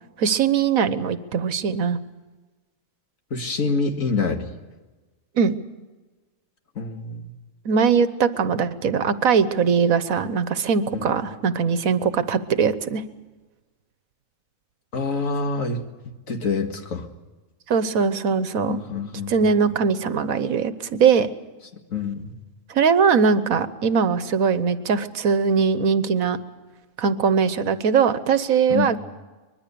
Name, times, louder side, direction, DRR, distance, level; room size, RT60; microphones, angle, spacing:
voice 1, 0.2-2.0 5.4-5.5 7.6-13.0 17.7-18.8 19.3-21.3 22.7-26.4 27.0-29.0, right 6 dB, 80° right, 13 dB, 1.5 m, -21 dB
voice 2, 3.3-4.5 6.8-7.3 10.9-11.0 14.9-15.8 16.3-17.1 18.6-19.5 21.9-22.3 28.7-29.0, left 4 dB, 70° left, 5 dB, 2.3 m, -26 dB
24.0 x 21.5 x 6.9 m, 1.2 s
omnidirectional pair, 1.4 m